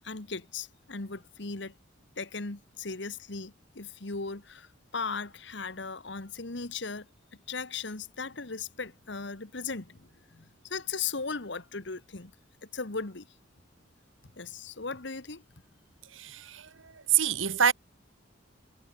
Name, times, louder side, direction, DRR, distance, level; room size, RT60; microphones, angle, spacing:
voice 1, 0.0-1.7 2.2-7.1 7.5-12.3 12.6-13.3 14.4-15.4, left 4 dB, 65° left, 1.6 m, -37 dB
voice 2, 16.1-17.7, right 8 dB, 80° right, 1.7 m, -27 dB
head